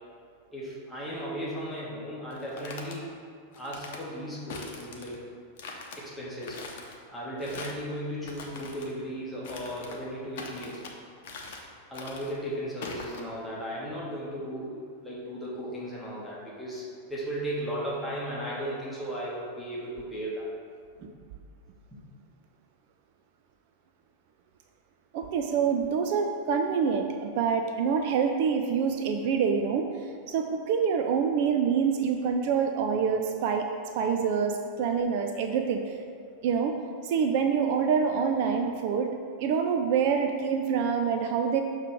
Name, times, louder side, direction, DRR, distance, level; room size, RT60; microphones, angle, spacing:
voice 1, 0.5-3.1 3.5-5.2 5.9-6.6 7.1-10.8 11.9-20.5, equal, 5° left, -7 dB, 1.3 m, -36 dB
sound 1, 2.3-3.0 3.5-4.0 4.5-5.2 5.6-6.0 6.4-7.0 7.4-7.9 8.2-8.9 9.4-10.0 10.3-10.9 11.2-11.7 11.9-12.4 12.8-13.2, left 4 dB, 55° left, 0.8 m, -42 dB
voice 2, 25.1-29.9 30.3-33.7 34.0-35.8 36.4-36.8 37.0-41.6, right 6 dB, 50° right, 4 dB, 0.4 m, -26 dB
6.6 x 3.2 x 5.9 m, 2.2 s
figure-of-eight pair, 90°, 0 cm